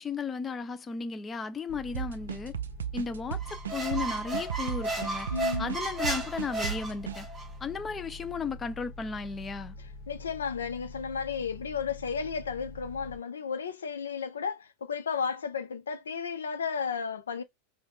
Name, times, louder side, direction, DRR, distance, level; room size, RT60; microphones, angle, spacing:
voice 1, 0.0-2.5 2.9-5.3 5.6-7.3 7.6-9.7, left 5 dB, 20° left, 0.4 m, -35 dB
sound 1, 1.7-13.2, left 2 dB, 45° left, 1.3 m, -46 dB
sound 2, 1.9-7.2, right 9 dB, 65° right, 0.3 m, -35 dB
Squeak, 3.4-7.5, right 2 dB, 15° right, 1.5 m, -34 dB
voice 2, 5.3-5.7 9.8-17.4, left 6 dB, 70° left, 0.5 m, -33 dB
3.4 x 2.3 x 3.8 m
figure-of-eight pair, 90°, 0 cm